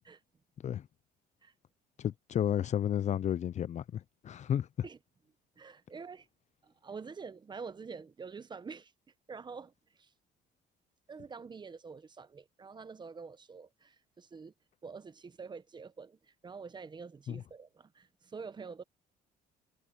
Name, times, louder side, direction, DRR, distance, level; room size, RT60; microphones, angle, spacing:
voice 1, 2.0-4.7 17.3-17.4, left 10 dB, 45° left, 0.6 m, -32 dB
voice 2, 5.6-6.3 6.6-8.9 9.3-10.1 11.1-14.5 14.8-18.8, right 5 dB, 25° right, 1.1 m, -47 dB
cardioid pair, 110°, 17 cm